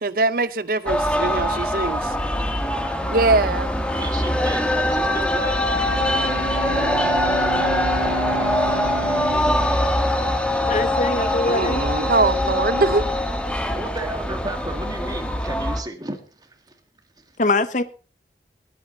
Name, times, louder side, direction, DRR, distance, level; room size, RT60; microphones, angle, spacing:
voice 1, 0.0-2.1 3.1-3.7 11.5-13.0, right 3 dB, 55° right, 0.7 m, -22 dB
sound 1, 0.9-15.8, left 1 dB, 5° left, 1.4 m, -23 dB
voice 2, 4.0-5.6 13.7-16.5 17.2-17.3, right 1 dB, 20° right, 1.8 m, -33 dB
Bowed string instrument, 5.7-11.3, right 2 dB, 80° right, 2.9 m, -30 dB
voice 3, 10.6-11.8 17.4-17.8, left 2 dB, 45° left, 0.8 m, -22 dB
18.5 x 8.4 x 3.9 m
head